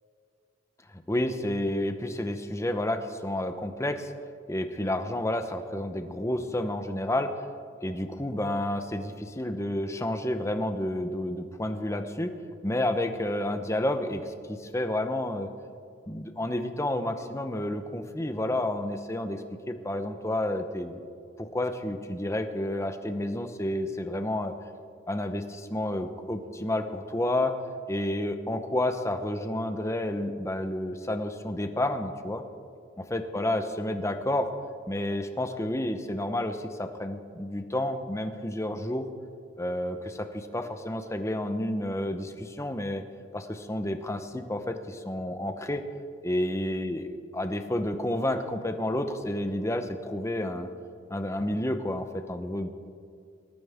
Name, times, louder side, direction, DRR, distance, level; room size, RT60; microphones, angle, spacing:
voice 1, 0.9-4.1 4.5-7.3 7.8-12.3 12.6-15.5 16.1-21.0 21.4-24.5 25.1-27.5 27.9-32.4 33.1-34.5 34.9-39.1 39.6-43.0 43.3-45.8 46.2-50.7 51.1-52.7, left 1 dB, 15° left, 7 dB, 0.9 m, -30 dB
19.5 x 13.5 x 3.6 m, 2.3 s
head